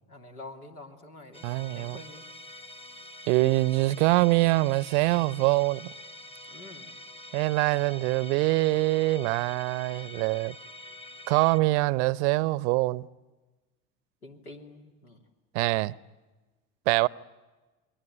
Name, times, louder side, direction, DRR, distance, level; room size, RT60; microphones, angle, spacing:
voice 1, 0.1-1.5 1.7-2.3 6.5-6.9 14.2-15.2, left 2 dB, 80° left, 3.1 m, -46 dB
Musical instrument, 1.3-11.6, left 1 dB, 15° left, 1.2 m, -46 dB
voice 2, 1.4-2.0 3.3-5.9 7.3-10.5 11.3-13.1 15.5-15.9 16.9-17.1, right 21 dB, 50° right, 0.8 m, -24 dB
28.0 x 21.5 x 9.0 m
figure-of-eight pair, 75°, 44 cm